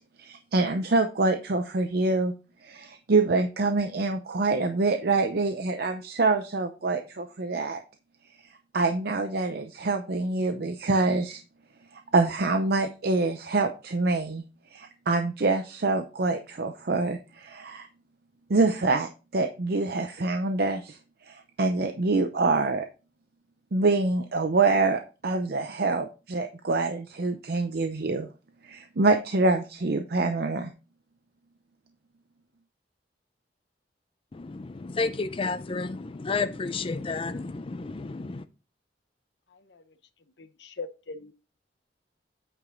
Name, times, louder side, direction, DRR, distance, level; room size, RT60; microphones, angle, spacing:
voice 1, 0.2-2.3 2.6-7.8 8.7-11.4 11.9-14.4 14.7-17.9 18.5-21.0 21.2-22.9 23.7-28.3 28.6-30.7, right 3 dB, 60° right, 0.7 m, -26 dB
voice 2, 34.3-38.4, left 4 dB, 30° left, 0.4 m, -31 dB
voice 3, 40.6-41.3, left 4 dB, 75° left, 0.9 m, -38 dB
8.9 x 5.0 x 3.8 m
head